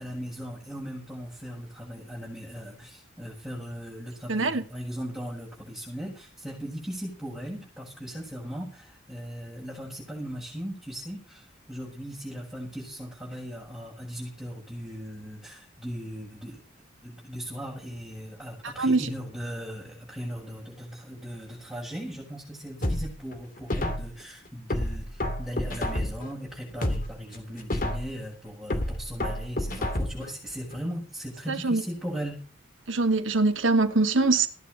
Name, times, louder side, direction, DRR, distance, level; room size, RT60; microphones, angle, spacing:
voice 1, 0.0-16.6 17.0-32.4, equal, ahead, 7.8 m, -38 dB
voice 2, 4.3-4.6 18.8-19.0 31.5-31.8 32.9-34.5, right 3 dB, 90° right, 2.3 m, -23 dB
sound 1, 22.8-24.2 24.7-26.3 26.7-28.2 28.7-30.3 30.7-30.8, left 1 dB, 45° left, 2.6 m, -30 dB
17.5 x 10.5 x 6.9 m
head